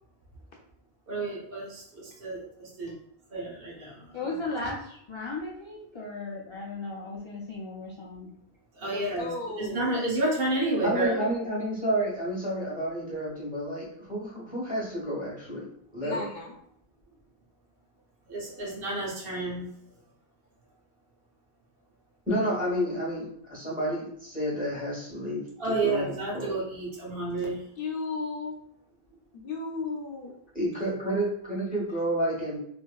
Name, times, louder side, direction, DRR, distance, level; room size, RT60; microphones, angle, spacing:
voice 1, 1.1-2.9 3.3-4.1 8.8-9.3 9.6-11.2 18.3-19.6 25.6-27.6, right 2 dB, 70° right, -2 dB, 1.0 m, -30 dB
voice 2, 4.1-8.4, left 2 dB, 45° left, -4 dB, 0.4 m, -36 dB
voice 3, 8.8-10.1 16.0-16.5 27.8-28.6 29.3-30.3, left 3 dB, 65° left, 0 dB, 0.8 m, -35 dB
voice 4, 10.8-16.3 22.3-26.6 30.5-32.6, equal, 10° right, -6 dB, 1.1 m, -30 dB
3.0 x 2.6 x 2.3 m, 0.71 s
omnidirectional pair, 1.0 m